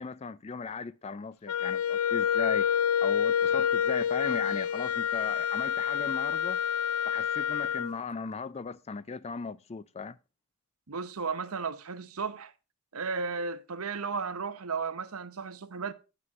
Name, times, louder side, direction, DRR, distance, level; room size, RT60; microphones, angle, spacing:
voice 1, 0.0-2.7 3.0-6.6 7.1-10.2, left 4 dB, 30° left, 0.4 m, -37 dB
Wind instrument woodwind instrument, 1.5-7.9, left 8 dB, 85° left, 0.5 m, -28 dB
voice 2, 10.9-12.5 12.9-15.9, right 5 dB, 75° right, 0.9 m, -34 dB
9.5 x 6.0 x 5.2 m
head